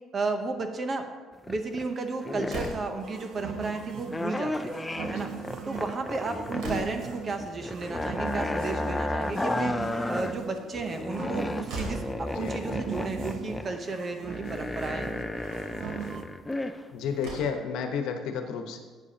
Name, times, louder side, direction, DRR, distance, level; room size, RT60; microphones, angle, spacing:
voice 1, 0.1-1.1 1.5-4.8 5.1-5.3 5.7-9.7 10.1-15.2, right 3 dB, 30° right, 6 dB, 0.9 m, -33 dB
sound 1, 1.3-1.9 2.2-2.8 4.1-6.9 7.1-10.3 10.7-16.8 17.2-17.3, left 2 dB, 10° left, 0.4 m, -33 dB
Slam, 2.5-3.1 4.3-4.7 5.0-5.1 5.4-5.5 6.0-7.2 8.9-9.6 11.2-11.3 11.7-12.2 13.3-13.4 13.8-13.9 14.7-14.9 16.6-16.7 17.1-17.7, right 2 dB, 85° right, 2.7 m, -39 dB
sound 2, 3.0-16.2, right 7 dB, 65° right, 0.9 m, -40 dB
voice 2, 12.3-12.8 16.9-18.8, left 6 dB, 85° left, 5 dB, 1.1 m, -32 dB
12.0 x 8.3 x 2.9 m, 1.4 s
cardioid pair, 140°, 0 cm